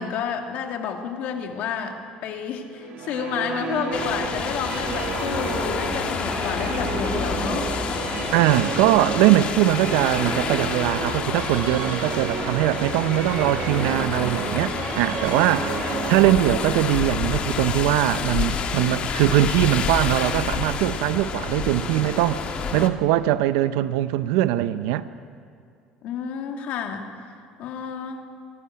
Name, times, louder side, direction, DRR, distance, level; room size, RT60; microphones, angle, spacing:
voice 1, 0.0-7.7 15.4-15.6 26.0-27.1 27.6-28.2, left 7 dB, 65° left, 2.4 m, -30 dB
Musical instrument, 2.8-18.2, right 7 dB, 55° right, 1.4 m, -32 dB
sound 1, 3.9-22.9, left 7 dB, 50° left, 1.6 m, -29 dB
sound 2, 4.2-22.8, right 4 dB, 30° right, 1.8 m, -40 dB
voice 2, 8.3-22.4 22.7-25.1, right 14 dB, 90° right, 0.6 m, -21 dB
25.0 x 11.5 x 9.6 m
cardioid pair, 115°, 3 cm